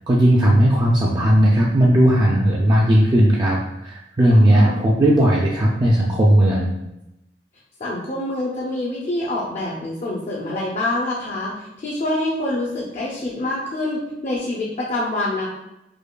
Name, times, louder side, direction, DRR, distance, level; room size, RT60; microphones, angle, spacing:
voice 1, 0.1-6.7, right 1 dB, 25° right, -3 dB, 0.3 m, -16 dB
voice 2, 4.3-4.8 7.8-15.5, left 1 dB, 40° left, -4 dB, 0.5 m, -26 dB
5.0 x 2.3 x 2.2 m, 0.92 s
head